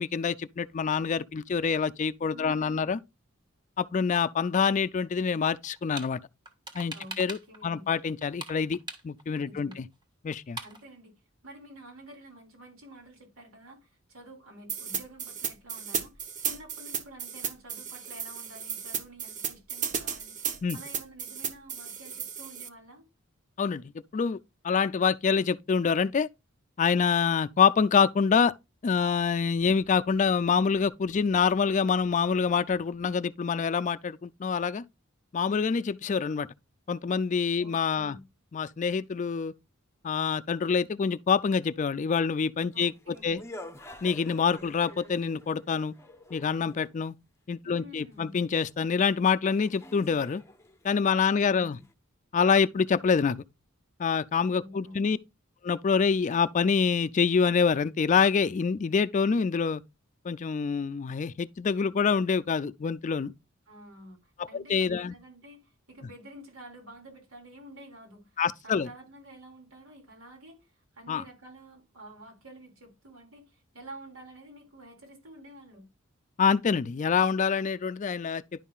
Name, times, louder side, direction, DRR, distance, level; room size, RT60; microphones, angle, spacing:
voice 1, 0.0-3.0 3.8-6.2 6.7-8.8 9.0-9.9 10.2-10.6 20.6-20.8 23.6-23.8 24.1-24.4 24.6-26.3 26.8-28.5 28.8-34.8 35.3-36.5 36.9-38.2 38.5-39.5 40.0-42.9 43.2-43.4 44.0-45.9 46.3-47.1 47.5-50.4 50.8-51.8 52.3-53.4 54.0-55.2 55.6-59.8 60.2-63.3 64.4-65.1 68.4-68.9 71.1-71.2 76.4-78.4, left 6 dB, 35° left, 0.4 m, -26 dB
voice 2, 2.3-3.0 6.9-7.2 7.5-7.9 9.4-9.8 10.6-23.1 37.6-38.3 42.7-43.5 47.6-48.4 51.2-51.8 54.6-55.2 63.7-75.9, right 1 dB, 80° right, 3.6 m, -49 dB
sound 1, 5.6-6.1 6.5-7.6 7.9-9.4 9.7-9.8 10.0-10.1 10.3-10.8, right 2 dB, 20° right, 1.4 m, -41 dB
sound 2, 14.7-22.7, right 7 dB, 35° right, 0.9 m, -34 dB
sound 3, 42.8-46.9 48.8-48.9 49.5-51.9, left 1 dB, 15° left, 0.8 m, -48 dB
10.5 x 5.5 x 2.3 m
head